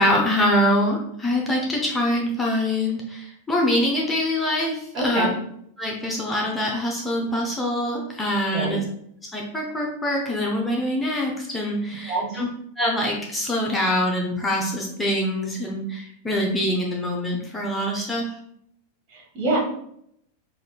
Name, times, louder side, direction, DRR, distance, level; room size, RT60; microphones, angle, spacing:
voice 1, 0.0-5.3 5.8-8.8 9.3-12.5 12.8-18.4, left 1 dB, 10° left, -1 dB, 0.7 m, -24 dB
voice 2, 4.9-5.3 8.5-8.8 12.1-12.4 19.1-19.6, right 2 dB, 45° right, -2 dB, 1.2 m, -25 dB
5.1 x 2.4 x 2.2 m, 0.71 s
figure-of-eight pair, 90°, 0 cm